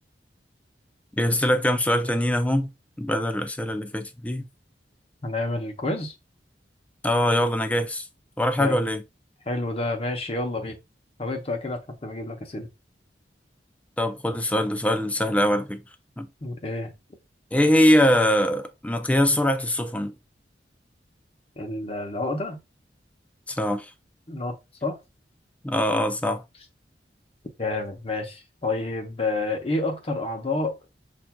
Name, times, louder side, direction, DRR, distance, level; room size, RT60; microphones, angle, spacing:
voice 1, 1.2-2.7 3.0-4.5 7.0-8.1 8.4-9.0 14.0-15.8 16.2-16.3 17.5-20.1 23.5-23.9 25.6-26.4, left 1 dB, 10° left, 0.3 m, -22 dB
voice 2, 5.2-6.1 8.6-8.8 9.5-10.8 11.2-12.7 16.4-16.9 21.6-22.6 24.3-24.5 24.8-25.0 27.6-30.8, left 2 dB, 35° left, 0.7 m, -29 dB
5.7 x 2.5 x 2.2 m
head